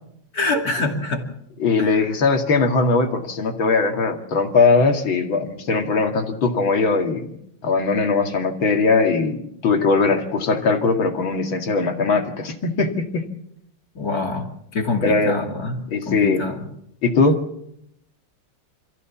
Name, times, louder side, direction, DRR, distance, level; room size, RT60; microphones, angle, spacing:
voice 1, 0.3-1.3 1.8-2.0 13.9-15.8 16.1-16.7, left 3 dB, 45° left, 3 dB, 3.0 m, -25 dB
voice 2, 1.6-7.3 7.6-13.3 15.0-15.3 15.9-16.4 17.0-17.4, left 4 dB, 70° left, 5 dB, 2.9 m, -20 dB
27.5 x 15.0 x 7.2 m, 0.75 s
omnidirectional pair, 2.2 m